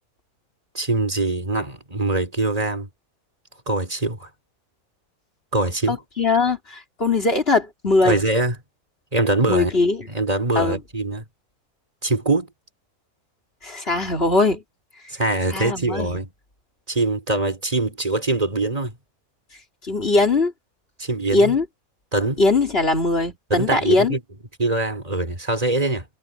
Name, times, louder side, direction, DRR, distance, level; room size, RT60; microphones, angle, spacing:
voice 1, 0.7-2.9 3.7-4.3 5.5-6.0 8.0-8.6 9.1-9.7 10.1-11.2 12.0-12.5 15.1-16.3 16.9-18.9 21.0-21.5 22.1-22.4 23.5-24.2 24.6-26.0, right 2 dB, 25° right, 4.2 m, -23 dB
voice 2, 5.9-8.2 9.5-10.0 10.6-10.8 13.6-14.6 15.5-16.2 19.9-20.5 21.3-21.6 22.4-24.1, left 3 dB, 40° left, 3.9 m, -20 dB
omnidirectional pair, 1.5 m